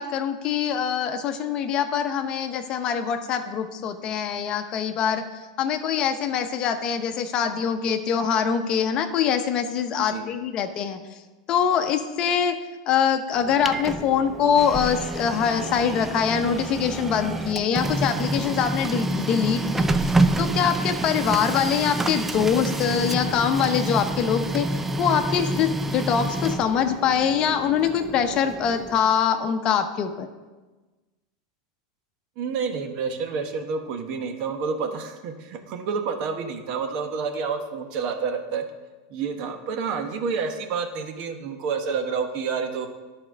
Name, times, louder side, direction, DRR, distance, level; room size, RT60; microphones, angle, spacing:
voice 1, 0.0-11.2 11.5-12.6 12.8-30.3, left 7 dB, 40° left, 8 dB, 0.8 m, -24 dB
Printer, 13.3-29.1, right 2 dB, 10° right, 0.5 m, -28 dB
voice 2, 32.4-38.6 39.1-42.9, right 5 dB, 55° right, 6 dB, 1.1 m, -29 dB
10.5 x 4.3 x 6.2 m, 1.2 s
supercardioid pair, 120°, 2 cm